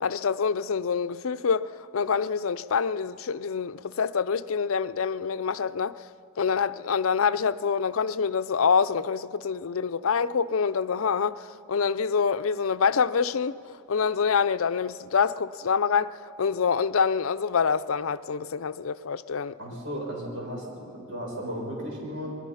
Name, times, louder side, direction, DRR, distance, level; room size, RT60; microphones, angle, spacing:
voice 1, 0.0-6.0 6.4-13.5 13.9-19.5, left 6 dB, 80° left, 0.5 m, -26 dB
voice 2, 19.6-22.3, equal, 65° right, 6.6 m, -35 dB
28.0 x 20.5 x 5.7 m
head